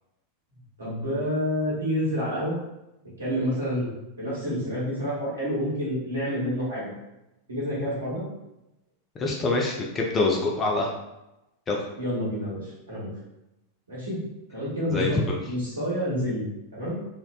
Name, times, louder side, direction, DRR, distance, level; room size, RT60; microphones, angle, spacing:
voice 1, 0.8-2.5 3.2-3.9 4.2-6.9 7.5-8.3 12.0-13.1 13.9-14.2 14.5-15.2 15.5-17.0, equal, 75° right, -7 dB, 0.9 m, -28 dB
voice 2, 9.2-10.9 11.7-11.8 14.9-15.4, left 3 dB, 25° left, -1 dB, 0.3 m, -25 dB
2.7 x 2.0 x 2.3 m, 0.93 s
figure-of-eight pair, 90°, 0 cm